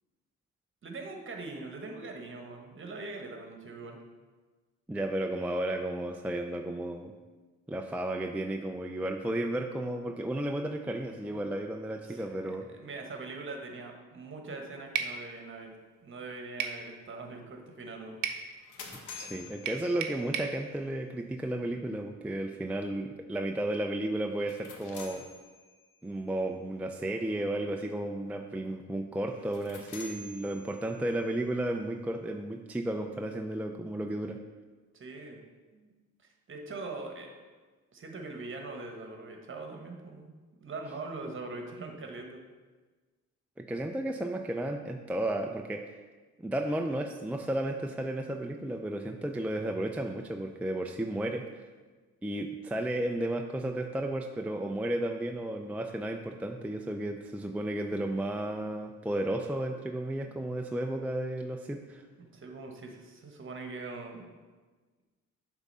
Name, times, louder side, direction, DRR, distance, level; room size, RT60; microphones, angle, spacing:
voice 1, 0.8-4.0 11.3-11.4 12.0-12.3 12.6-15.7 16.0-18.2 34.9-35.4 35.7-35.9 36.2-37.3 37.9-40.3 40.6-42.4 60.3-60.4 62.2-64.3, right 3 dB, 40° right, 3 dB, 1.3 m, -42 dB
voice 2, 4.9-7.1 7.7-12.7 19.2-25.2 26.0-34.4 43.6-46.0 46.4-51.6 52.2-62.0, right 1 dB, 5° right, 3 dB, 0.4 m, -33 dB
sound 1, 15.0-15.2 16.6-16.8 18.2-18.5 19.7-20.6, right 8 dB, 85° right, 0.7 m, -33 dB
sound 2, 18.3-20.5 24.3-26.0 29.3-31.1, left 4 dB, 90° left, 1.0 m, -48 dB
8.1 x 3.7 x 5.4 m, 1.3 s
cardioid pair, 90°, 30 cm